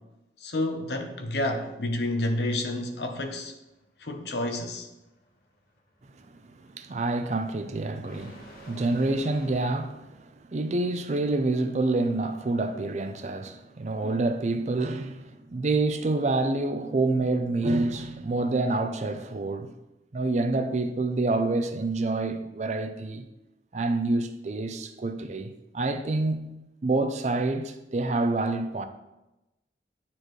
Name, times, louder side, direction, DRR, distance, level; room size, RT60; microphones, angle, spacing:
voice 1, 0.4-3.5 4.0-4.9, left 1 dB, 70° left, 0.8 m, -29 dB
sound 1, 3.6-10.0, equal, 50° left, 1.4 m, -51 dB
voice 2, 6.6-19.7 20.1-23.3 23.7-28.8, right 2 dB, 40° right, 0.4 m, -27 dB
9.7 x 4.3 x 3.1 m
head